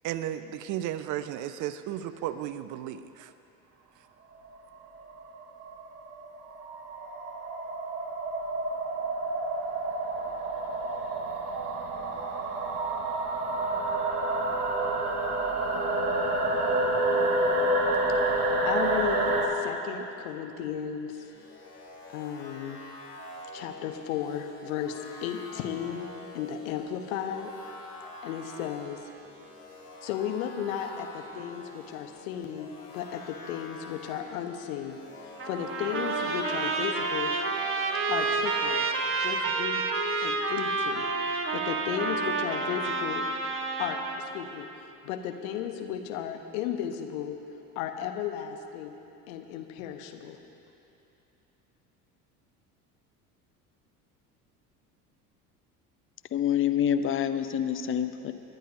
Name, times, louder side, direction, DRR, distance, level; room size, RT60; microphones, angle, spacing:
voice 1, 0.0-3.3, right 11 dB, 45° right, 12 dB, 0.5 m, -34 dB
sound 1, 4.5-19.5, right 2 dB, 70° right, 1.7 m, -29 dB
voice 2, 18.4-21.2 22.1-22.8 23.5-26.1 26.3-27.5 28.2-29.0 30.0-35.0 35.4-37.3 38.1-38.9 39.2-39.9 40.2-43.3 43.8-44.7 45.0-47.4 47.8-48.9 49.3-50.4, left 9 dB, 65° left, 6 dB, 1.0 m, -34 dB
sound 2, 21.1-39.1, left 2 dB, 85° left, 1.7 m, -46 dB
Trumpet, 35.4-44.3, right 3 dB, 25° right, 1.3 m, -29 dB
voice 3, 56.3-58.3, left 9 dB, 30° left, 10 dB, 0.7 m, -27 dB
28.0 x 10.5 x 2.7 m, 2.8 s
figure-of-eight pair, 65°, 45 cm